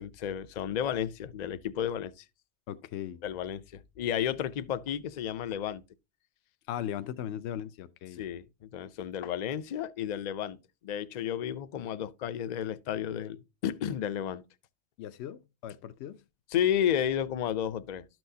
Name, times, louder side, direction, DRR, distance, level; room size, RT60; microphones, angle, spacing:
voice 1, 0.0-2.2 3.2-5.8 8.2-10.6 10.8-14.4 16.5-18.1, left 9 dB, 50° left, 0.5 m, -32 dB
voice 2, 2.7-3.2 6.7-8.2 15.0-16.2, left 10 dB, 80° left, 0.9 m, -38 dB
12.0 x 6.2 x 2.7 m
omnidirectional pair, 1.1 m